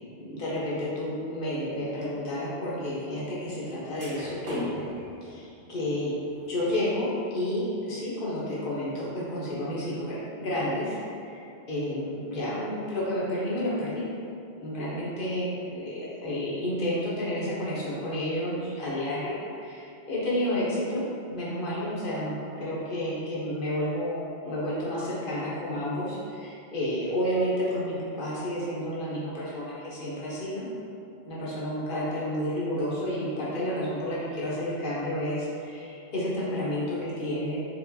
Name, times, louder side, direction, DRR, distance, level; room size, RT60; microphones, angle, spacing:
voice 1, 0.2-4.8 5.2-6.1 6.5-14.1 14.6-21.0 21.3-30.7 31.2-37.6, left 1 dB, 50° left, -8 dB, 1.1 m, -31 dB
sound 1, 1.7-1.9 3.7-3.8 4.0-6.8, left 1 dB, 55° right, 1.1 m, -39 dB
4.4 x 3.2 x 2.7 m, 2.6 s
omnidirectional pair, 1.2 m